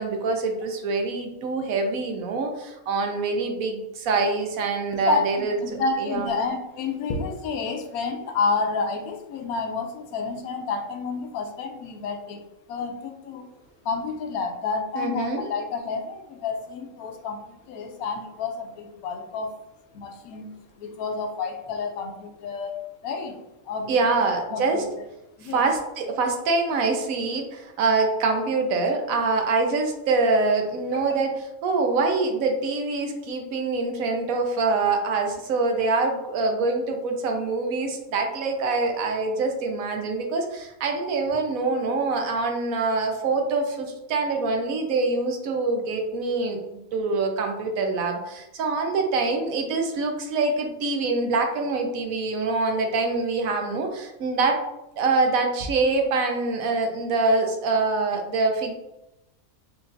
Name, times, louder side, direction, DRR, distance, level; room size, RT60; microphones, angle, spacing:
voice 1, 0.0-5.6 6.0-6.3 14.9-15.4 23.9-24.8 25.4-54.6 55.0-58.7, right 3 dB, 75° right, 3 dB, 1.1 m, -25 dB
voice 2, 5.0-13.5 13.8-19.5 19.9-20.5 20.8-23.4 23.7-24.3 24.5-25.0 25.4-25.7 30.9-31.0, left 4 dB, 85° left, 5 dB, 1.1 m, -30 dB
5.0 x 2.5 x 2.6 m, 0.89 s
omnidirectional pair, 1.5 m